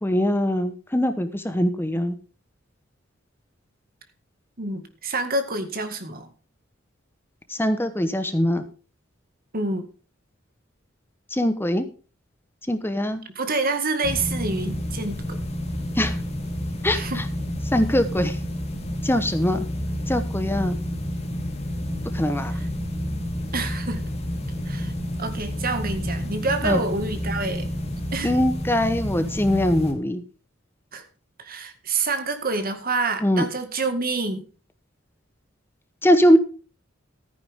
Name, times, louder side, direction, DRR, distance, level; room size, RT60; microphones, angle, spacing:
voice 1, 0.0-2.1 7.5-8.6 11.3-11.8 12.7-13.2 16.0-16.1 16.8-17.0 17.7-18.4 19.0-19.6 20.1-20.8 22.1-22.5 26.6-26.8 28.2-30.2 33.2-33.4 36.0-36.4, equal, 10° left, 9 dB, 1.0 m, -22 dB
voice 2, 4.6-6.3 9.5-9.9 13.4-15.4 16.9-17.2 22.5-22.7 23.5-24.0 24.7-24.9 25.2-27.7 28.1-28.3 30.9-31.0 31.4-34.4, right 3 dB, 50° right, 8 dB, 2.0 m, -27 dB
sound 1, 14.0-29.9, equal, 35° left, 3.1 m, -29 dB
14.5 x 9.6 x 3.7 m, 0.37 s
head